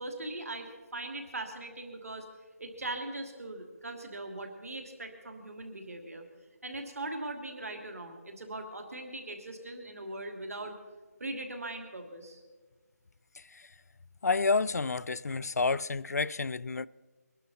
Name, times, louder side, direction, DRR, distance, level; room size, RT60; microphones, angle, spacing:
voice 1, 0.0-2.2 2.6-6.2 6.6-10.7 11.2-12.4, right 2 dB, 60° right, 2.9 m, -40 dB
voice 2, 13.4-13.7 14.2-16.9, left 4 dB, 70° left, 0.4 m, -30 dB
22.0 x 11.5 x 4.2 m
figure-of-eight pair, 180°, 9 cm